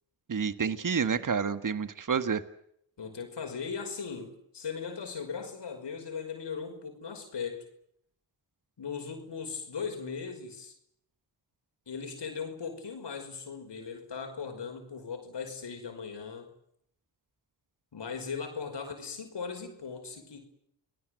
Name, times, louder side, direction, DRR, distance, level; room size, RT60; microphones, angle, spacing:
voice 1, 0.3-2.4, right 6 dB, 45° right, 11 dB, 1.8 m, -29 dB
voice 2, 3.0-7.7 8.8-10.7 11.9-16.5 17.9-20.5, left 6 dB, 65° left, 5 dB, 5.5 m, -38 dB
29.0 x 19.5 x 7.9 m, 0.72 s
cardioid pair, 50°, 46 cm